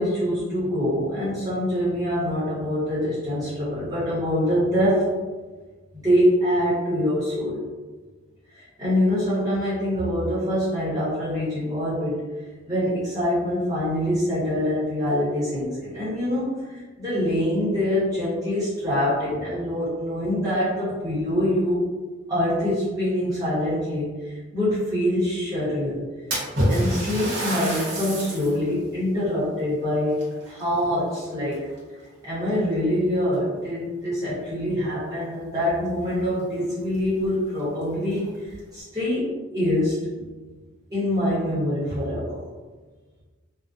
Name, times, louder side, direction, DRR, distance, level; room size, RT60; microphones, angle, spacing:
voice 1, 0.0-5.1 6.0-7.7 8.5-12.2 12.7-21.8 22.3-26.1 26.7-31.6 32.2-40.2 40.9-42.4, equal, 15° right, -11 dB, 0.9 m, -25 dB
Splash splatter, 26.3-28.6 29.1-29.2 30.1-31.2 31.5-32.0 32.8-32.9 33.3-33.4 35.6-35.7 36.0-36.1 36.7-36.8 37.2-37.3 38.0-38.6, equal, 50° right, 0.8 m, -27 dB
2.5 x 2.1 x 2.3 m, 1.3 s
head